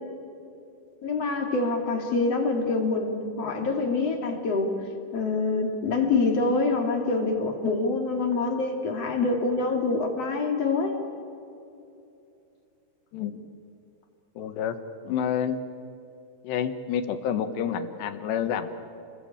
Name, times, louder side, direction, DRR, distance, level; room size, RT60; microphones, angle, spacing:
voice 1, 1.0-4.7 5.1-11.0, left 3 dB, 40° left, 3 dB, 3.4 m, -26 dB
voice 2, 13.1-13.4 14.4-15.6 16.4-18.7, left 8 dB, 85° left, 9 dB, 3.5 m, -29 dB
29.5 x 21.0 x 8.8 m, 2.7 s
omnidirectional pair, 4.8 m